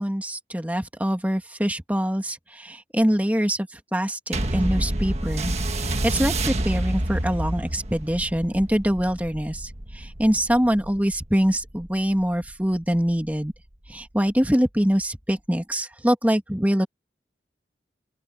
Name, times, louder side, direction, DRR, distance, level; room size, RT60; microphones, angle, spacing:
voice 1, 0.0-5.5 5.8-9.7 10.0-13.5 13.9-16.9, equal, 10° right, 2.3 m, -24 dB
sound 1, 4.3-13.1 13.9-14.0, right 1 dB, 40° right, 1.6 m, -28 dB
open air
head